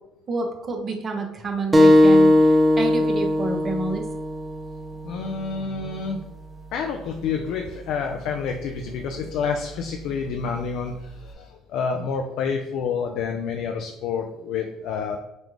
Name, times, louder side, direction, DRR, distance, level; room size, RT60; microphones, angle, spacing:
voice 1, 0.3-4.0, right 3 dB, 45° right, 2 dB, 0.9 m, -28 dB
sound 1, 1.7-6.9, left 1 dB, 25° right, 0.5 m, -19 dB
voice 2, 5.0-6.2 6.7-15.2, left 5 dB, 70° left, 3 dB, 0.4 m, -28 dB
5.2 x 2.3 x 3.1 m, 0.88 s
hypercardioid pair, 65°, 0 cm